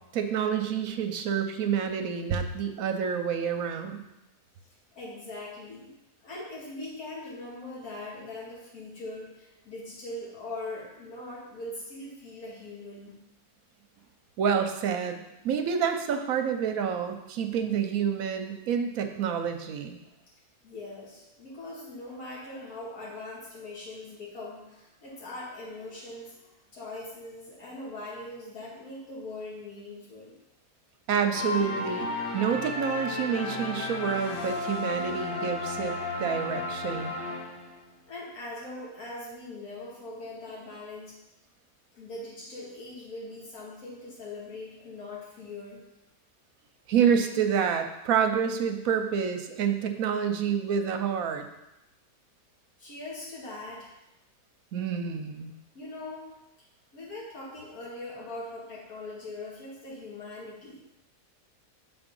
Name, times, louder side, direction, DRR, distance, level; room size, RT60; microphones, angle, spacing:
voice 1, 0.1-4.0 14.4-20.0 31.1-32.1 32.3-37.2 46.9-51.5 54.7-55.5, right 7 dB, 70° right, 6 dB, 1.0 m, -28 dB
voice 2, 4.9-5.9 6.2-13.2 20.0-20.1 20.6-30.4 38.1-41.2 41.9-45.9 52.8-53.9 55.7-56.4 56.9-60.9, left 2 dB, 60° left, -6 dB, 2.2 m, -41 dB
sound 1, 31.3-37.9, left 3 dB, 45° left, 1.3 m, -33 dB
7.0 x 4.0 x 5.3 m, 0.92 s
omnidirectional pair, 1.7 m